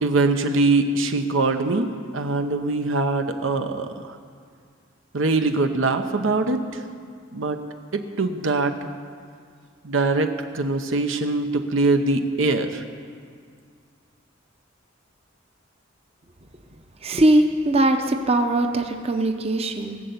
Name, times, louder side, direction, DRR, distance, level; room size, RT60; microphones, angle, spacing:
voice 1, 0.0-4.2 5.1-6.6 7.3-7.6 7.9-8.7 9.8-12.8, right 3 dB, 80° right, 7 dB, 0.9 m, -22 dB
voice 2, 17.0-20.0, right 1 dB, 30° right, 5 dB, 0.7 m, -20 dB
18.5 x 6.8 x 8.1 m, 2.1 s
head